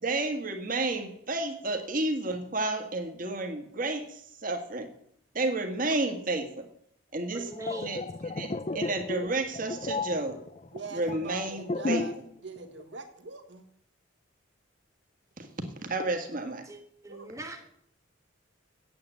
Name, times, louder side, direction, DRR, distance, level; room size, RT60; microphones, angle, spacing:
voice 1, 0.0-4.9 5.3-6.6 7.1-7.4 7.8-8.0 8.3-8.5 8.7-10.4 10.9-12.0 15.4-15.5 15.8-16.6, right 2 dB, 45° right, 6 dB, 1.7 m, -31 dB
voice 2, 7.3-8.1 16.6-17.7, right 1 dB, 15° right, 4 dB, 1.3 m, -41 dB
sound 1, 7.4-12.3 12.6-12.8, left 3 dB, 30° left, 0.4 m, -34 dB
voice 3, 10.7-12.1 12.4-13.6 15.5-15.6 17.1-17.3, right 3 dB, 60° right, 6 dB, 1.6 m, -42 dB
8.7 x 8.7 x 7.9 m, 0.69 s
head